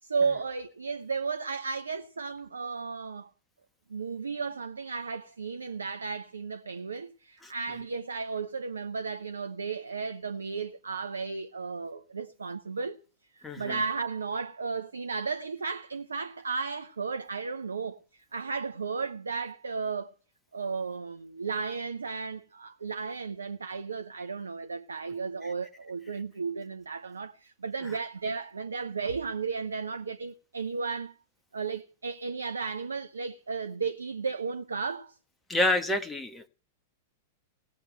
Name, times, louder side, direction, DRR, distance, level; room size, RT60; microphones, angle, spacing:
voice 1, 0.0-3.3 3.9-13.0 13.4-20.1 20.5-31.1 31.5-35.2, right 5 dB, 75° right, 0.8 m, -34 dB
voice 2, 13.4-13.8 35.5-36.5, left 2 dB, 10° left, 1.4 m, -28 dB
18.5 x 8.1 x 9.1 m
figure-of-eight pair, 95°, 0 cm